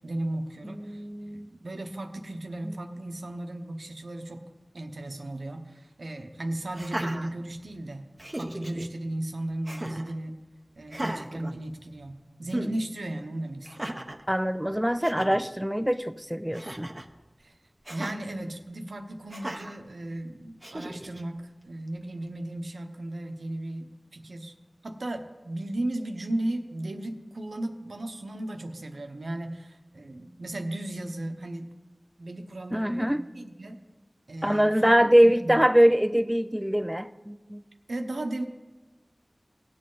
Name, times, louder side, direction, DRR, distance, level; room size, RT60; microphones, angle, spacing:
voice 1, 0.0-4.5 4.7-8.1 8.3-10.4 10.8-13.9 17.4-17.5 17.9-24.5 24.8-31.7 32.2-33.8 34.3-34.9 35.2-35.6 37.9-38.4, right 1 dB, 90° right, 5 dB, 0.9 m, -35 dB
voice 2, 0.6-1.5 2.6-2.8 14.3-16.9 32.7-33.2 34.4-37.6, equal, 5° right, 10 dB, 0.4 m, -23 dB
Laughter, 6.7-7.8 8.2-8.9 9.6-10.1 10.9-12.1 12.5-12.7 13.6-14.2 14.7-14.8 15.0-15.4 16.5-17.1 17.8-18.2 19.3-19.8 20.6-21.2, right 1 dB, 30° right, 0.8 m, -36 dB
18.0 x 7.7 x 3.9 m, 1.2 s
wide cardioid pair, 50°, 0 cm